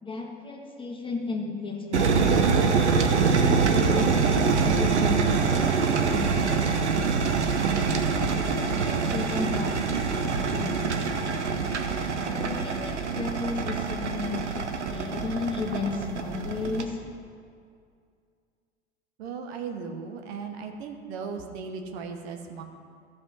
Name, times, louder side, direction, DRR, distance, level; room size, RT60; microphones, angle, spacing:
voice 1, 0.0-2.6 3.2-7.6 8.3-11.3 12.2-17.0, left 3 dB, 15° left, 1 dB, 1.6 m, -34 dB
sound 1, 1.9-16.8, right 5 dB, 85° right, 0.9 m, -25 dB
voice 2, 19.2-22.6, right 5 dB, 65° right, 5 dB, 1.1 m, -37 dB
14.0 x 5.3 x 5.4 m, 2.3 s
hypercardioid pair, 80°, 34 cm